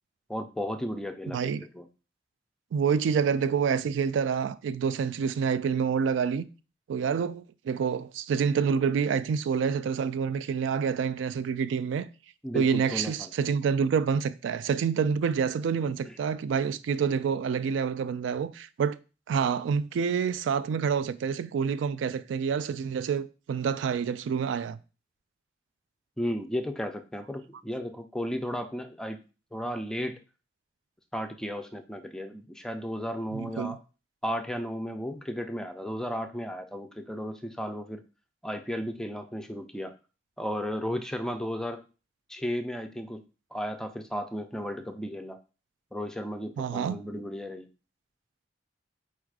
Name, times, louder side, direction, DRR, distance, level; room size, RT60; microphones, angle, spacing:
voice 1, 0.3-1.8 12.4-13.3 15.8-16.2 26.2-29.2 29.5-30.2 31.1-33.8 34.2-38.0 38.4-39.9 40.4-41.8 42.3-43.2 43.5-45.4 45.9-47.7, equal, 5° left, 0.3 m, -34 dB
voice 2, 1.3-1.7 2.7-6.4 6.9-12.1 12.5-19.0 19.3-24.8 33.3-33.8 46.6-47.0, right 6 dB, 90° right, 0.3 m, -27 dB
4.3 x 2.4 x 4.6 m
head